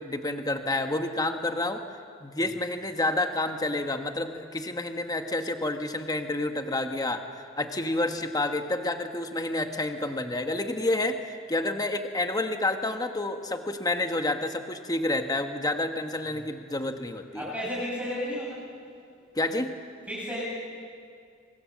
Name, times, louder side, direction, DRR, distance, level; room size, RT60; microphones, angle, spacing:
voice 1, 0.0-1.8 2.2-17.5 19.4-19.8, left 2 dB, 20° left, 6 dB, 1.2 m, -29 dB
voice 2, 17.4-18.6 20.1-20.4, equal, 5° right, -5 dB, 6.9 m, -32 dB
25.0 x 24.5 x 7.4 m, 2.2 s
head